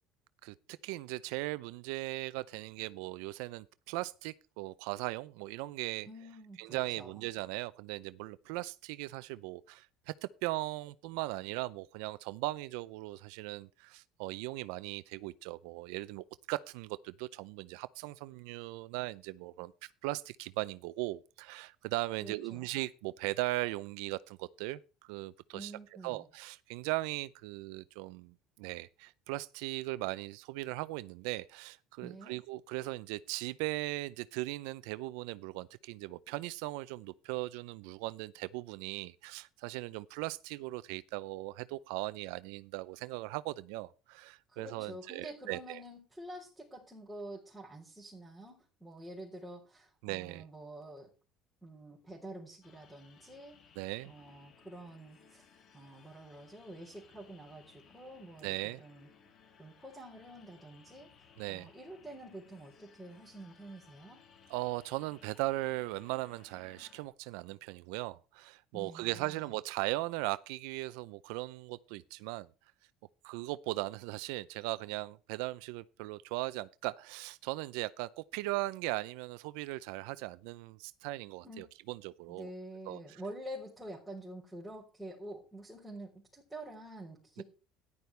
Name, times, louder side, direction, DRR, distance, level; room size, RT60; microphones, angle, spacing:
voice 1, 0.8-6.1 6.6-25.7 26.0-45.8 50.0-50.5 53.8-54.1 58.4-58.8 61.4-61.7 64.5-72.5 73.2-82.5 82.9-83.2 87.4-87.5, right 20 dB, 90° right, 0.5 m, -38 dB
voice 2, 6.1-7.1 22.2-22.7 25.5-26.3 32.0-32.4 44.5-51.1 51.6-53.6 54.0-55.5 55.7-59.1 59.6-64.2 68.7-69.5 81.4-81.7 82.3-87.4, right 1 dB, 5° right, 3.7 m, -48 dB
sound 1, 52.6-67.0, left 6 dB, 45° left, 2.5 m, -62 dB
14.0 x 11.0 x 3.3 m
cardioid pair, 140°, 0 cm